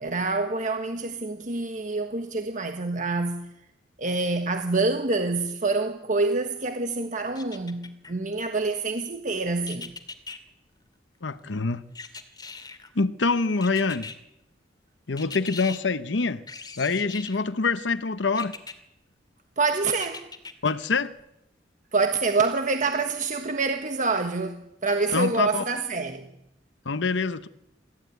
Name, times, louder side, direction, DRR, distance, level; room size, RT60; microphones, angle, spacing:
voice 1, 0.0-3.5 4.0-9.9 19.6-20.3 21.9-26.3, right 3 dB, 45° right, 1.4 m, -26 dB
sound 1, 7.3-8.1 9.6-10.4 11.9-12.9 13.6-14.2 15.2-15.8 16.5-17.4 18.3-18.7 19.9-20.7 21.2-21.3, left 4 dB, 25° left, 2.4 m, -40 dB
voice 2, 11.2-11.8 12.9-14.1 15.1-16.4 16.8-18.5 20.6-21.1 25.1-25.6 26.8-27.5, left 4 dB, 75° left, 0.9 m, -25 dB
27.0 x 15.0 x 9.3 m
head